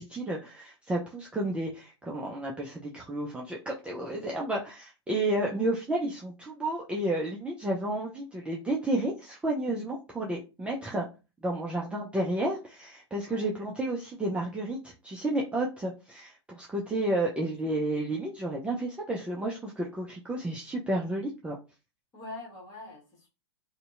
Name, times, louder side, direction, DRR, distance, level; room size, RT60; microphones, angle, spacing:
voice 1, 0.0-11.1 11.4-21.6, right 1 dB, 10° right, 0.4 m, -31 dB
voice 2, 13.2-13.5 17.4-17.8 22.1-23.3, left 2 dB, 25° left, 1.2 m, -45 dB
2.6 x 2.1 x 2.4 m
hypercardioid pair, 105°, 15 cm